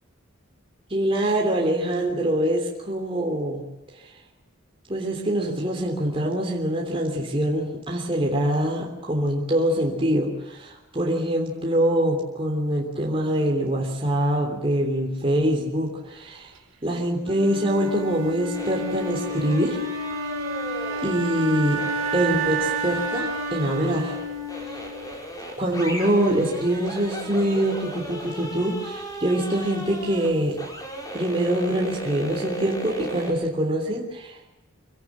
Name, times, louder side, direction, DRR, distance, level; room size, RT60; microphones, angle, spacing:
voice 1, 0.9-3.7 4.0-4.1 4.9-16.5 16.8-19.8 21.0-21.8 22.1-24.2 25.6-30.6 31.1-34.5, right 1 dB, 25° right, -1 dB, 3.3 m, -24 dB
Wind instrument woodwind instrument, 17.2-25.2, right 2 dB, 85° right, 4.6 m, -30 dB
sound 1, 17.7-33.3, equal, 20° left, 5.6 m, -37 dB
26.5 x 16.5 x 7.4 m, 1.0 s
head